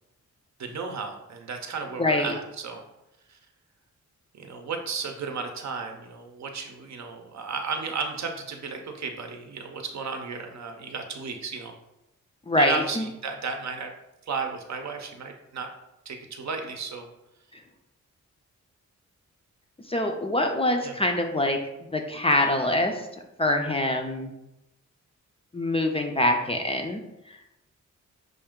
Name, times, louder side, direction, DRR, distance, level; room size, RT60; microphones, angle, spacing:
voice 1, 0.6-2.8 3.3-3.4 4.3-11.7 12.6-13.9 14.2-15.7 16.1-17.1 20.8-21.0, right 5 dB, 65° right, 4 dB, 0.7 m, -34 dB
voice 2, 2.0-2.3 12.5-13.1 17.5-17.6 19.9-21.6 21.9-23.1 23.4-24.3 25.5-27.6, left 1 dB, 20° left, 3 dB, 0.4 m, -25 dB
5.5 x 2.5 x 3.6 m, 0.91 s
wide cardioid pair, 140°, 30 cm